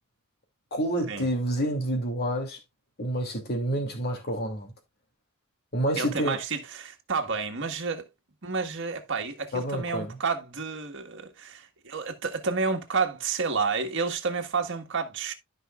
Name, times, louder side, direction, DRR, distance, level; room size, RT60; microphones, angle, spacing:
voice 1, 0.7-2.6 3.0-4.7 5.7-6.4 9.5-10.1, right 1 dB, 50° left, 2.7 m, -28 dB
voice 2, 6.0-8.1 8.4-15.3, right 4 dB, 60° right, 1.7 m, -30 dB
14.0 x 5.5 x 2.4 m
head